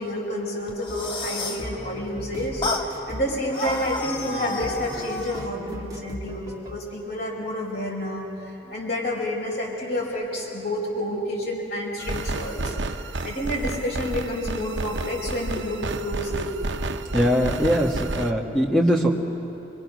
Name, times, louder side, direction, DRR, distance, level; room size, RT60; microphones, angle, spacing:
voice 1, 0.0-16.5, left 1 dB, 65° left, -4 dB, 4.9 m, -29 dB
sound 1, 0.7-1.7 2.6-2.9 3.5-5.5, left 3 dB, 30° left, 1.5 m, -30 dB
sound 2, 0.9-6.8, right 1 dB, 20° right, 1.8 m, -39 dB
sound 3, 12.0-18.3, right 2 dB, 85° right, 0.9 m, -31 dB
voice 2, 17.1-19.1, equal, 5° left, -2 dB, 1.5 m, -21 dB
25.5 x 24.5 x 6.2 m, 2.9 s
head